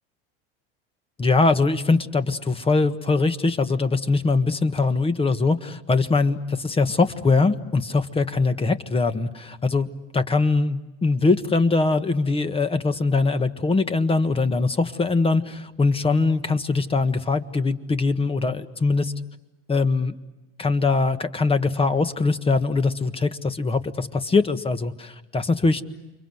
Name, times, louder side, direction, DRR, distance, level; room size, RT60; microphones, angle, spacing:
voice 1, 1.2-9.9 10.1-19.1 19.7-20.1 20.6-25.8, left 3 dB, 20° left, 9 dB, 1.6 m, -22 dB
29.5 x 24.0 x 7.9 m, 1.1 s
supercardioid pair, 115°, 30 cm